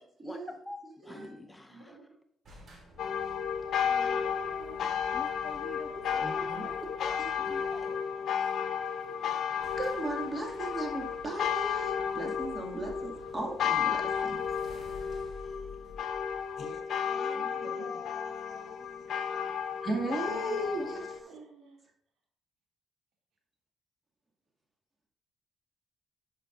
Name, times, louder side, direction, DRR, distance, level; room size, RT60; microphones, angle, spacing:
voice 1, 0.2-2.0 5.1-8.3, left 1 dB, 15° left, 7 dB, 0.5 m, -46 dB
voice 2, 1.7-2.0 3.8-4.9 6.0-6.9 17.3-18.0 19.9-20.7 21.3-21.8, right 3 dB, 85° right, -2 dB, 2.8 m, -49 dB
sound 1, 2.4-8.0 9.0-9.1 9.2-9.3 9.6-17.1, left 1 dB, 55° right, 3.2 m, -53 dB
sound 2, 3.0-21.2, left 7 dB, 65° left, 0.7 m, -33 dB
voice 3, 6.2-6.6 7.2-7.3 9.8-14.0 14.2-14.4 19.8-21.2, right 1 dB, 30° right, 0 dB, 2.3 m, -36 dB
voice 4, 16.6-19.4, left 3 dB, 45° left, -1 dB, 3.0 m, -49 dB
12.0 x 5.2 x 2.7 m, 0.67 s
cardioid pair, 90°, 0 cm